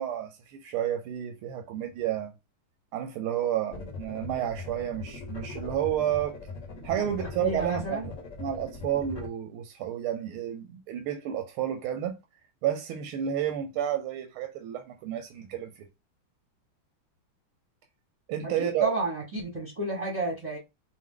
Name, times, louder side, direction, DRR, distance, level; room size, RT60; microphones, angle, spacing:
voice 1, 0.0-2.3 2.9-6.4 6.8-8.1 8.4-12.2 12.6-15.9 18.3-18.9, right 10 dB, 85° right, 1.5 m, -31 dB
sound 1, 3.7-9.3, left 4 dB, 50° left, 1.0 m, -40 dB
voice 2, 7.0-8.1 18.4-20.6, right 2 dB, 25° right, 0.8 m, -32 dB
4.9 x 2.2 x 3.7 m
omnidirectional pair, 2.3 m